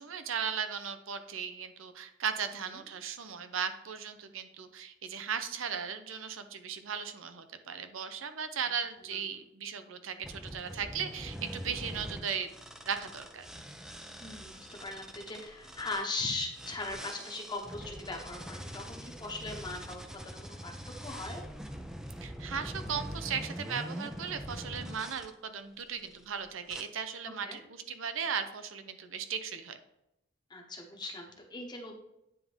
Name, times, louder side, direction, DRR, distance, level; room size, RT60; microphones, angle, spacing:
voice 1, 0.0-12.5 12.8-13.5 22.2-29.8, right 7 dB, 80° right, 9 dB, 0.6 m, -37 dB
sound 1, 10.2-16.1 16.5-25.3 25.9-26.3 26.7-26.8, equal, 5° right, 0.4 m, -43 dB
voice 2, 14.2-21.4 27.4-27.6 30.5-32.0, left 3 dB, 20° left, 1 dB, 1.0 m, -39 dB
9.3 x 3.5 x 3.5 m, 0.85 s
head